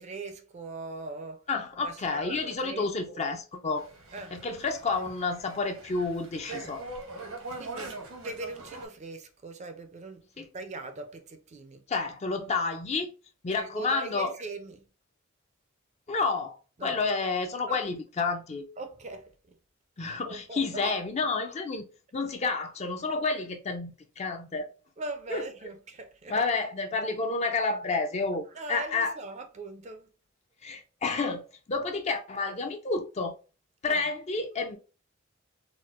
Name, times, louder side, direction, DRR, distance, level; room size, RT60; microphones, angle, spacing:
voice 1, 0.0-1.4 1.8-3.2 4.1-4.4 7.6-11.9 13.6-14.9 16.8-17.0 17.7-17.8 18.8-19.6 20.0-21.0 25.0-26.5 28.5-30.1 33.8-34.1, right 3 dB, 35° right, 0.4 m, -40 dB
voice 2, 1.5-3.9 4.3-6.8 10.4-10.5 11.9-13.1 13.4-14.3 16.1-16.6 16.8-18.7 20.0-21.8 22.1-24.7 25.3-25.4 26.3-29.1 30.6-33.3 33.8-34.8, left 4 dB, 30° left, 0.4 m, -30 dB
sound 1, 3.8-8.9, right 3 dB, 80° right, 1.1 m, -42 dB
4.1 x 2.1 x 2.4 m
head